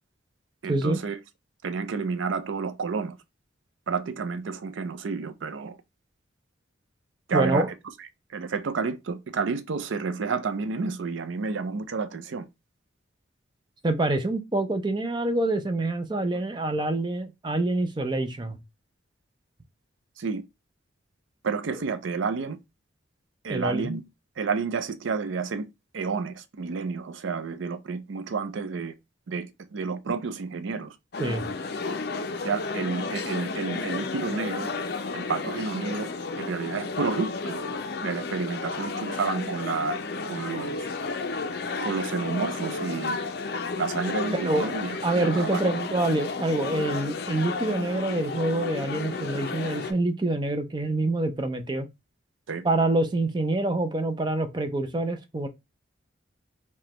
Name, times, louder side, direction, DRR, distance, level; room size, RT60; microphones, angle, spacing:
voice 1, 0.6-1.2 1.6-3.2 3.9-5.8 7.3-7.7 8.3-12.5 20.2-20.4 21.4-22.6 23.4-24.0 24.4-25.7 25.9-28.9 29.3-31.0 32.4-34.7 35.1-36.1 36.4-37.6 38.0-40.0 40.3-40.9 41.8-43.2 43.8-45.7 52.5-52.6, right 5 dB, 75° right, 0.5 m, -30 dB
voice 2, 7.3-7.7 13.8-18.6 21.7-21.8 23.5-24.0 31.2-31.5 44.3-44.7 45.0-51.9 52.6-55.5, right 2 dB, 25° right, 0.5 m, -26 dB
sound 1, 31.1-49.9, left 4 dB, 55° left, 0.5 m, -32 dB
4.9 x 2.2 x 2.9 m
head